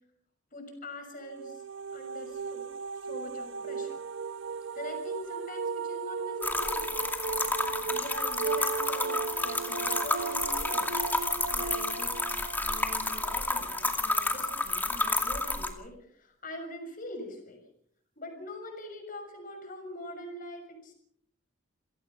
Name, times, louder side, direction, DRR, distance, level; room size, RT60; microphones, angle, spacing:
voice 1, 0.5-1.6 1.9-2.6 3.0-4.0 4.7-7.1 7.6-11.0 11.5-17.6 18.2-20.9, left 1 dB, 45° left, 5 dB, 6.4 m, -43 dB
sound 1, 1.2-14.0, right 5 dB, 70° right, 0.9 m, -36 dB
sound 2, 6.4-15.7, left 2 dB, 10° left, 2.3 m, -30 dB
28.0 x 17.0 x 5.8 m, 0.68 s
head